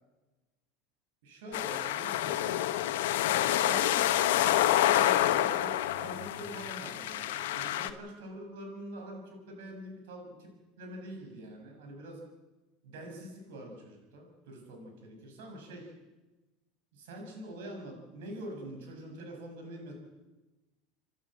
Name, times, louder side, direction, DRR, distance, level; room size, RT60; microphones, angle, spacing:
voice 1, 1.2-2.7 3.5-12.2 12.8-15.9 16.9-19.9, right 1 dB, 85° right, 2 dB, 7.0 m, -45 dB
sound 1, 1.5-7.9, left 13 dB, 85° left, 1.2 m, -28 dB
30.0 x 11.5 x 7.8 m, 1.1 s
supercardioid pair, 125°, 0 cm